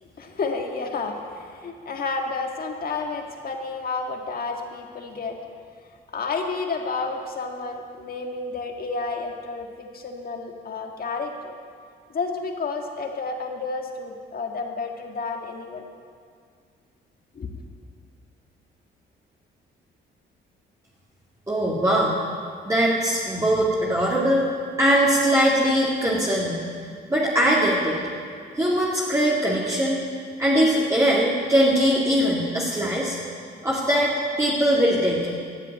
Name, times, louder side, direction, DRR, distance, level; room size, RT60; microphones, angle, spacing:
voice 1, 0.0-5.4 6.1-11.5 12.1-15.8 17.4-17.5, left 4 dB, 50° left, 2 dB, 1.9 m, -31 dB
voice 2, 21.5-22.2 22.6-24.4 24.8-26.6 27.1-28.0 28.6-30.0 30.4-33.2 33.6-35.3, equal, 15° right, -7 dB, 2.4 m, -21 dB
14.0 x 7.5 x 9.3 m, 2.1 s
cardioid pair, 90°, 20 cm